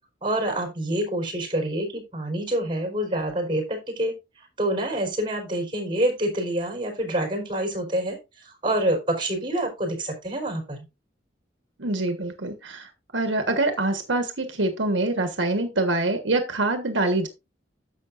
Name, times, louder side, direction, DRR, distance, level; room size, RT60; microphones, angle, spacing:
voice 1, 0.2-4.1 4.6-10.8, right 1 dB, 25° right, 4.3 m, -27 dB
voice 2, 11.8-17.3, right 2 dB, 80° right, 1.4 m, -25 dB
11.0 x 7.5 x 2.6 m
head